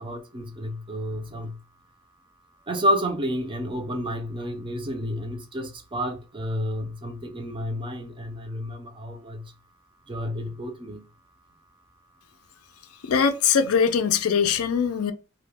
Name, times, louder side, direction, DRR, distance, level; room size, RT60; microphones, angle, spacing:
voice 1, 0.0-1.5 2.7-9.4 10.1-11.0, equal, 25° right, 0.4 m, -30 dB
voice 2, 13.0-15.1, left 6 dB, 70° left, 0.4 m, -22 dB
2.2 x 2.1 x 3.2 m
head